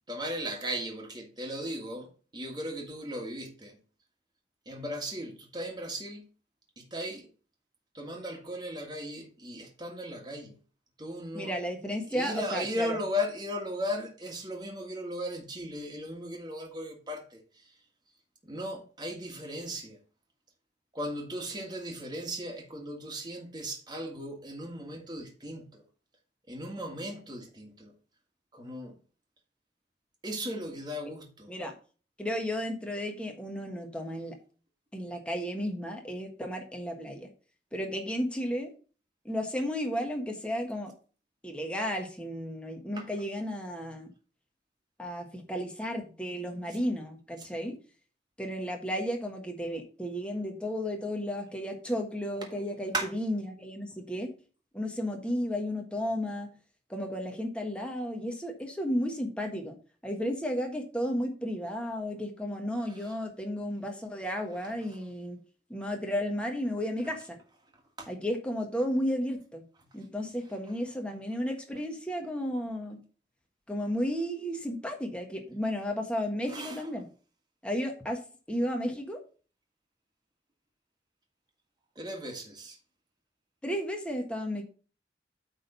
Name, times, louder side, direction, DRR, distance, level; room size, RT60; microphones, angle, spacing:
voice 1, 0.1-3.8 4.6-6.2 6.8-7.3 7.9-10.6 11.0-11.5 12.1-17.6 18.4-20.0 20.9-25.8 26.5-27.9 28.5-29.0 30.2-31.6 42.9-43.1 47.4-47.5 52.4-52.6 52.9-53.1 62.8-63.1 64.6-64.9 68.0-68.1 76.5-76.9 81.9-82.8, equal, 25° right, 1.7 m, -37 dB
voice 2, 11.3-13.0 31.5-31.7 32.2-34.4 34.9-37.3 37.7-38.7 39.2-40.9 41.4-44.1 45.0-47.8 48.4-54.3 54.7-56.5 56.9-59.8 60.0-65.4 65.7-67.4 68.1-69.6 69.9-73.0 73.7-77.1 77.6-78.2 78.5-79.2 83.6-84.6, equal, 5° left, 1.4 m, -33 dB
8.8 x 3.7 x 5.5 m
head